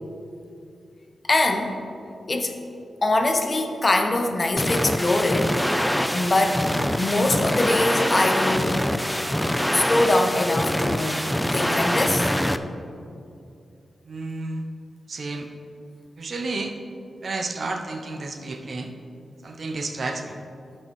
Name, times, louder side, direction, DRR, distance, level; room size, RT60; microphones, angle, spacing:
voice 1, 1.2-1.8 2.3-2.6 3.0-5.6 6.1-8.8 9.7-12.3, left 2 dB, 40° left, 5 dB, 0.8 m, -23 dB
sound 1, 4.6-12.6, equal, 5° left, 0.4 m, -24 dB
voice 2, 14.0-14.6 15.1-15.5 16.2-16.7 17.2-18.9 19.4-20.4, right 3 dB, 55° right, 4 dB, 0.7 m, -31 dB
10.5 x 4.6 x 4.7 m, 2.5 s
cardioid pair, 65°, 0 cm